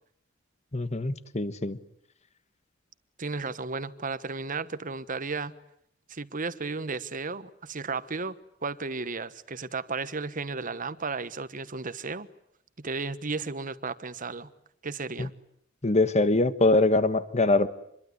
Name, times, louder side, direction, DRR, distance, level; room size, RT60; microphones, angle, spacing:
voice 1, 0.7-1.8 15.2-15.3 15.8-17.7, left 2 dB, 35° left, 1.4 m, -23 dB
voice 2, 3.2-5.5 6.1-8.3 8.6-12.3 12.8-14.5 14.8-15.3, right 4 dB, 45° right, 1.2 m, -34 dB
26.5 x 22.5 x 9.7 m
head